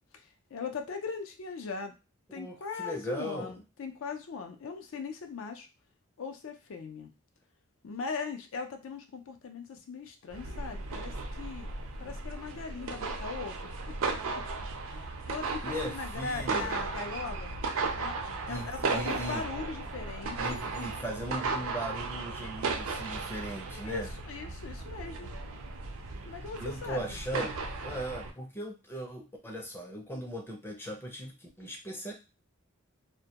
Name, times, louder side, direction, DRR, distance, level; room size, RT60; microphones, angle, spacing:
voice 1, 0.1-1.9 2.3-5.7 6.2-7.1 7.8-11.7 12.0-13.7 14.9-17.5 18.0-18.2 18.5-20.6 23.7-25.3 26.2-27.2, left 4 dB, 70° left, 5 dB, 0.4 m, -40 dB
voice 2, 2.3-3.5 15.6-16.8 18.5-19.4 20.4-24.1 26.6-32.1, equal, 10° left, 1 dB, 0.5 m, -38 dB
sound 1, 10.3-28.3, right 3 dB, 75° right, 0.4 m, -36 dB
2.1 x 2.1 x 2.8 m, 0.29 s
head